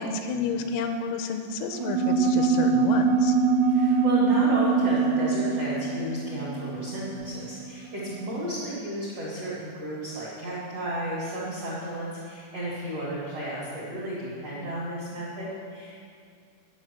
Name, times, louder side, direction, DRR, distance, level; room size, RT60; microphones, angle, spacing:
voice 1, 0.0-3.4, left 5 dB, 85° left, 6 dB, 3.2 m, -30 dB
sound 1, 1.7-7.7, right 4 dB, 85° right, 3.2 m, -23 dB
voice 2, 3.7-15.9, right 1 dB, 65° right, -8 dB, 1.5 m, -33 dB
10.5 x 6.2 x 7.2 m, 2.2 s
omnidirectional pair, 6.0 m